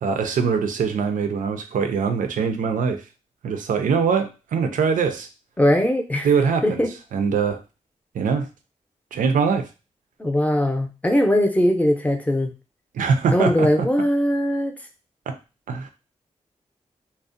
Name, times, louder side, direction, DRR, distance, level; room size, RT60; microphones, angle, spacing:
voice 1, 0.0-3.0 3.4-5.3 6.2-6.8 7.1-7.6 8.1-8.5 9.1-9.7 12.9-13.9 15.3-15.4 15.7-15.9, right 5 dB, 90° right, 7 dB, 0.4 m, -22 dB
voice 2, 5.6-6.3 6.6-6.9 10.2-12.5 13.3-14.7, equal, 10° left, 4 dB, 0.5 m, -20 dB
2.5 x 2.0 x 2.5 m, 0.30 s
cardioid pair, 55°, 13 cm